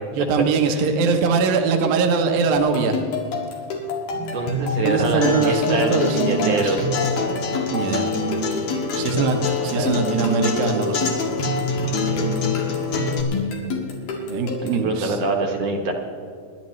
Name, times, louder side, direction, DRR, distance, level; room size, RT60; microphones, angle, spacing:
voice 1, 0.1-3.0 4.8-6.8 7.7-8.1 8.9-11.1 14.3-15.2, right 4 dB, 80° right, 4 dB, 2.8 m, -22 dB
sound 1, 2.6-14.9, left 3 dB, 85° left, 3.9 m, -28 dB
voice 2, 4.1-6.9 9.7-9.9 14.7-15.9, right 2 dB, 60° right, 1 dB, 1.9 m, -24 dB
Acoustic guitar, 5.2-13.2, left 3 dB, 55° left, 2.7 m, -26 dB
27.5 x 11.5 x 3.2 m, 2.3 s
omnidirectional pair, 4.1 m